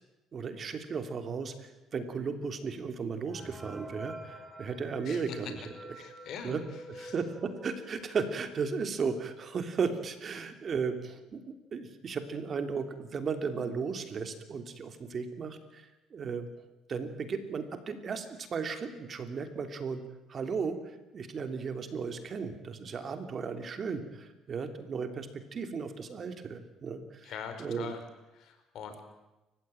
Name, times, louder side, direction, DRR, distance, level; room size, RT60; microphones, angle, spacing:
voice 1, 0.3-5.6 6.4-6.6 6.9-16.5 16.9-20.0 20.3-27.3 27.6-27.9, right 5 dB, 45° right, 8 dB, 3.1 m, -35 dB
sound 1, 3.3-8.7 9.2-9.3 9.5-9.6 10.3-10.4 10.8-11.1, right 1 dB, 15° right, 3.7 m, -48 dB
voice 2, 5.0-5.4 5.9-7.2 27.2-28.0 28.3-29.0, left 7 dB, 65° left, 7 dB, 4.9 m, -43 dB
28.5 x 15.5 x 9.1 m, 1.0 s
cardioid pair, 100°, 0 cm